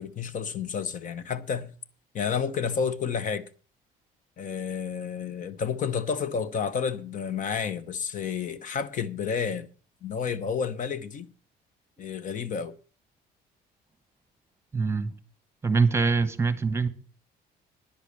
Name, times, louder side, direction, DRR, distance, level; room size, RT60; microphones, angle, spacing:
voice 1, 0.0-1.7 2.1-3.4 4.4-9.7 10.0-11.3 12.0-12.7, left 6 dB, 50° left, 0.9 m, -30 dB
voice 2, 14.7-15.1 15.6-16.9, right 4 dB, 15° right, 1.2 m, -24 dB
10.0 x 8.2 x 6.6 m
cardioid pair, 110°, 17 cm